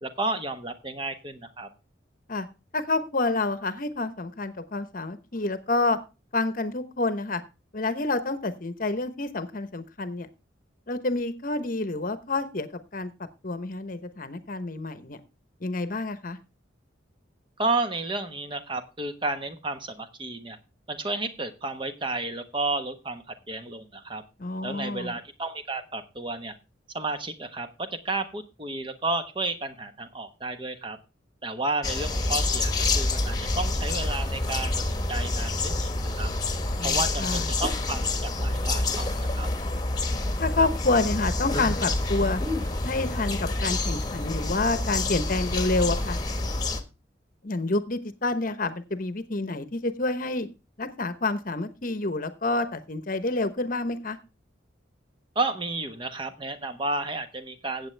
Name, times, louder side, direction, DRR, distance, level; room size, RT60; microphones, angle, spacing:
voice 1, 0.0-1.7 17.6-20.6 20.9-24.2 24.6-26.5 26.9-31.0 31.4-35.9 36.2-36.3 36.8-38.0 38.4-39.5 55.3-57.9, right 2 dB, 25° right, 8 dB, 1.2 m, -32 dB
voice 2, 2.7-6.0 6.3-7.4 7.7-10.3 10.9-13.1 13.4-15.2 15.6-16.4 24.4-25.1 36.8-37.5 40.4-42.4 42.8-46.2 47.4-50.5 50.8-54.2, left 2 dB, 45° left, 11 dB, 1.0 m, -28 dB
sound 1, 31.8-46.8, left 2 dB, 20° left, 1.3 m, -27 dB
16.0 x 7.9 x 3.3 m, 0.30 s
head